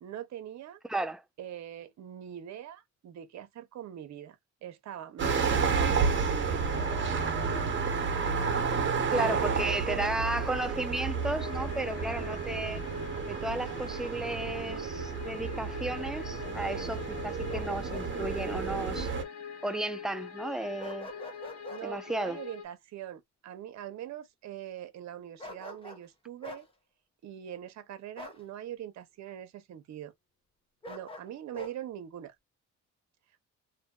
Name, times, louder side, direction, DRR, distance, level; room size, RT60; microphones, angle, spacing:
voice 1, 0.0-0.8 1.4-4.4 4.6-6.7 9.1-10.1 21.7-26.7 27.2-30.1 30.9-32.3, right 11 dB, 65° right, 0.8 m, -42 dB
voice 2, 0.9-1.2 9.1-12.8 13.3-19.1 19.6-21.1 21.8-22.4, right 1 dB, ahead, 0.3 m, -34 dB
sound 1, 5.2-19.2, right 5 dB, 40° right, 1.0 m, -31 dB
sound 2, 6.1-22.7, left 7 dB, 55° left, 0.7 m, -44 dB
Bark, 13.6-14.7 17.5-18.1 18.4-18.6 20.8-21.8 25.4-26.1 26.4-26.7 28.2-28.4 30.8-31.7, left 1 dB, 20° left, 0.9 m, -45 dB
2.6 x 2.6 x 2.2 m
cardioid pair, 90°, 30 cm